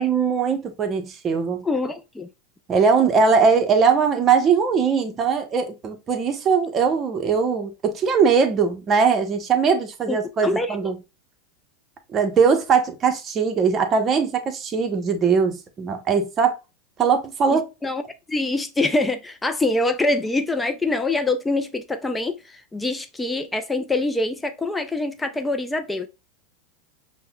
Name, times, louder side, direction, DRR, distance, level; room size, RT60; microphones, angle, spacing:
voice 1, 0.0-1.6 2.7-11.0 12.1-16.6 17.0-17.6, right 5 dB, 30° right, 0.8 m, -20 dB
voice 2, 1.6-2.3 10.1-10.2 10.4-10.8 17.5-18.0 18.3-26.1, left 2 dB, 10° left, 0.4 m, -24 dB
5.3 x 2.1 x 2.3 m
hypercardioid pair, 100°, 0 cm